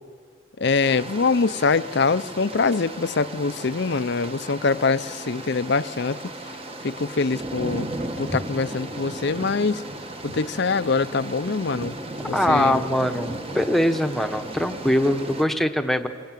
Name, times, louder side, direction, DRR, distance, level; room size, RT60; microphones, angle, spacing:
voice 1, 0.6-6.2 6.8-7.9 8.2-9.8 10.2-11.9 12.3-12.8, left 4 dB, 55° left, 14 dB, 0.6 m, -24 dB
sound 1, 0.8-15.4, right 1 dB, 30° right, 1.3 m, -35 dB
voice 2, 12.3-16.1, left 1 dB, ahead, 6 dB, 1.1 m, -22 dB
28.5 x 22.0 x 9.1 m, 2.1 s
head